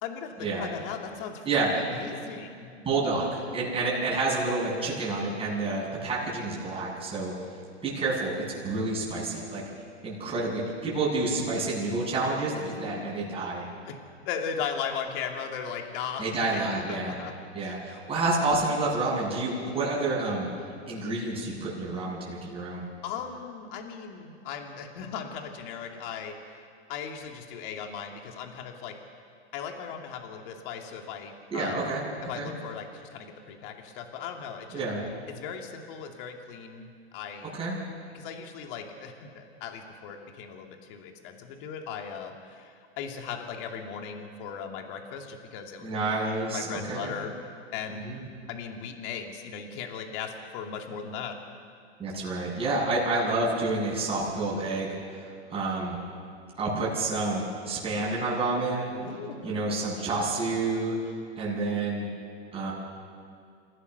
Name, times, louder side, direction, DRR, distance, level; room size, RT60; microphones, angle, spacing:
voice 1, 0.0-1.4 1.7-2.7 12.7-13.1 13.8-14.0 14.2-16.3 16.5-17.3 17.6-18.0 23.0-26.6 26.9-29.0 29.5-31.9 32.2-34.8 35.3-37.6 38.1-46.1 46.5-47.3 47.7-48.0 48.5-51.4 58.9-59.6, left 7 dB, 50° left, 3 dB, 2.4 m, -38 dB
voice 2, 2.8-7.3 7.8-8.3 8.6-9.6 10.0-13.7 16.2-17.2 17.5-20.5 20.9-22.8 31.5-32.0 32.3-32.5 34.7-35.0 37.6-37.8 45.8-47.1 47.9-48.2 52.0-55.0 55.5-56.0 56.6-58.9 59.4-60.9 61.4-62.1 62.5-62.7, right 3 dB, 15° right, -6 dB, 7.7 m, -29 dB
28.0 x 16.0 x 6.7 m, 2.3 s
hypercardioid pair, 130°, 35 cm